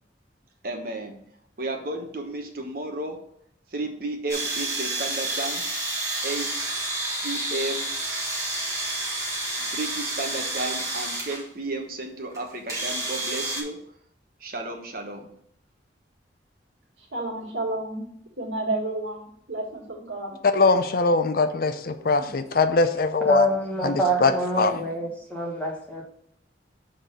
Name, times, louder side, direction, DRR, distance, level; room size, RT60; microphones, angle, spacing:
voice 1, 0.6-1.2 1.6-3.2 3.7-5.6 6.2-6.5 7.2-7.9 9.7-13.8 14.4-15.3 24.5-24.9, right 2 dB, 50° right, 1.1 m, -33 dB
sound 1, 4.3-11.4 12.3-12.4 12.7-13.6, right 2 dB, 15° right, 1.6 m, -29 dB
voice 2, 17.0-18.0 18.4-20.4 22.2-22.3, right 2 dB, 85° right, 2.0 m, -31 dB
voice 3, 20.5-23.5 23.8-24.7, left 3 dB, 50° left, 0.5 m, -22 dB
voice 4, 23.3-26.0, right 1 dB, 10° left, 1.4 m, -26 dB
6.4 x 3.9 x 5.4 m
head